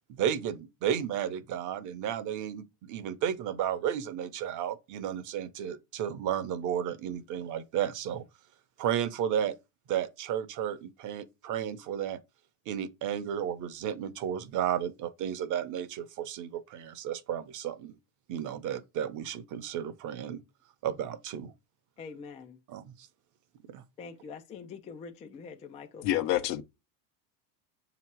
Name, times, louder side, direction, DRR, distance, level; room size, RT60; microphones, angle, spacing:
voice 1, 0.1-8.2 8.8-9.5 9.9-12.2 12.7-17.9 18.3-20.4 20.8-21.5 22.7-23.1 23.7-23.8, right 9 dB, 40° right, 0.8 m, -33 dB
voice 2, 22.0-22.6 24.0-26.2, left 5 dB, 15° left, 0.3 m, -45 dB
voice 3, 26.0-26.6, left 13 dB, 85° left, 1.0 m, -27 dB
7.0 x 3.0 x 4.5 m
supercardioid pair, 130°, 47 cm